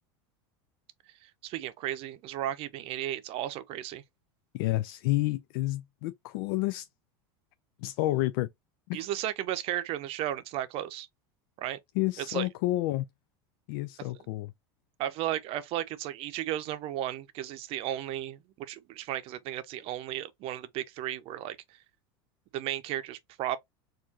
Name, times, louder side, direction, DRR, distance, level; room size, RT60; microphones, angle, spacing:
voice 1, 1.2-4.0 8.9-11.1 11.6-11.8 12.3-12.5 15.0-21.6 22.5-23.6, right 12 dB, 50° right, 0.6 m, -34 dB
voice 2, 4.5-6.9 7.8-8.5 8.9-9.0 12.0-13.1 13.7-14.5, left 17 dB, 65° left, 0.4 m, -29 dB
4.4 x 2.5 x 2.7 m
supercardioid pair, 125°, 13 cm